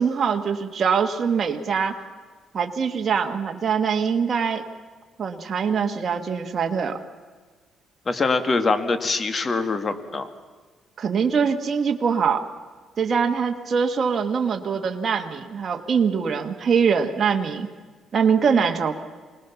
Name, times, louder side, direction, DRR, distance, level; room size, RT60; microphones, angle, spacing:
voice 1, 0.0-2.0 2.5-4.6 5.2-7.0 11.0-12.5 13.0-17.7 18.1-19.0, right 6 dB, 45° right, 3 dB, 1.6 m, -23 dB
voice 2, 8.1-10.3, left 3 dB, 35° left, 9 dB, 2.1 m, -23 dB
25.5 x 19.5 x 7.1 m, 1.5 s
cardioid pair, 90°, 0 cm